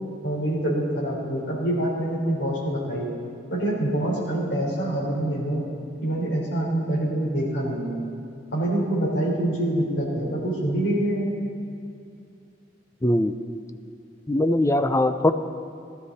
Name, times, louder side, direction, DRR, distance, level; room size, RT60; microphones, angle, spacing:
voice 1, 0.2-3.1 3.5-5.6 6.0-8.0 8.5-11.3, right 1 dB, 80° left, -5 dB, 4.2 m, -25 dB
voice 2, 13.0-13.4 14.3-15.3, left 1 dB, 15° left, 9 dB, 0.5 m, -21 dB
17.0 x 13.0 x 4.2 m, 2.5 s
head